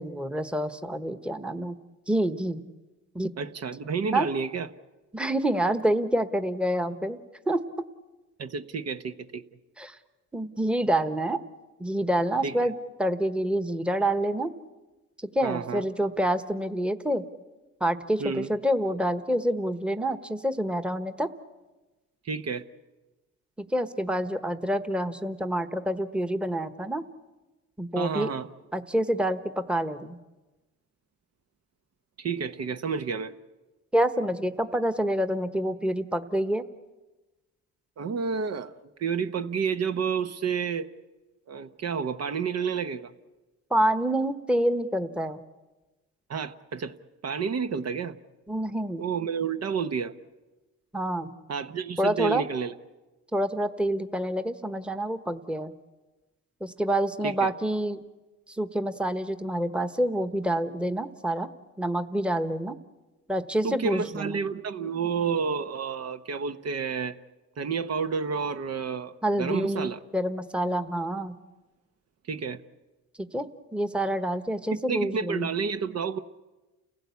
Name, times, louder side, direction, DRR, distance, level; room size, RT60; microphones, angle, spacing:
voice 1, 0.0-1.7 2.1-2.6 3.1-3.3 4.1-4.3 5.1-7.2 7.5-7.6 9.8-10.0 10.3-11.4 11.8-12.7 13.0-14.5 15.2-17.2 17.8-21.3 23.6-27.0 27.8-28.3 28.7-30.2 33.9-36.6 43.7-45.4 48.5-49.0 50.9-51.3 52.0-52.4 53.3-55.7 56.6-58.0 58.6-61.5 61.8-62.7 63.3-64.4 69.2-71.4 73.2-75.5, right 1 dB, 5° right, 10 dB, 1.1 m, -27 dB
voice 2, 3.4-4.7 8.4-9.4 12.4-12.7 15.4-15.8 18.2-18.5 22.2-22.6 28.0-28.5 32.2-33.3 38.0-38.7 39.0-40.9 41.5-43.1 46.3-46.9 47.2-48.2 49.0-50.1 51.5-52.7 57.2-57.5 63.6-67.2 67.6-70.0 72.3-72.6 74.9-76.2, right 6 dB, 55° right, 10 dB, 1.0 m, -30 dB
30.0 x 16.0 x 8.4 m, 1.1 s
cardioid pair, 90°, 30 cm